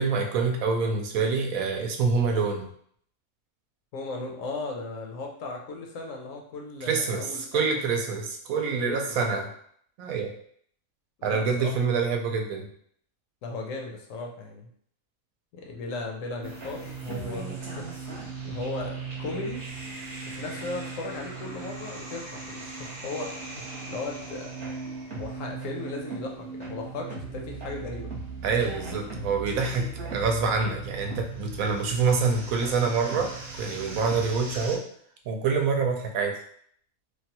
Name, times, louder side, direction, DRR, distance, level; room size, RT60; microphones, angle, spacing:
voice 1, 0.0-2.7 6.9-9.4 10.0-10.3 11.2-12.7 28.4-34.8 35.3-36.4, right 5 dB, 75° right, 3 dB, 1.0 m, -26 dB
voice 2, 3.9-7.7 8.5-9.5 11.2-11.8 13.4-14.7 15.5-17.9 18.2-19.6 20.2-24.5 25.1-28.1, left 3 dB, 70° left, 1 dB, 1.0 m, -37 dB
sound 1, 16.4-34.8, right 4 dB, 45° right, 1.0 m, -38 dB
3.2 x 2.2 x 2.8 m, 0.63 s
omnidirectional pair, 1.5 m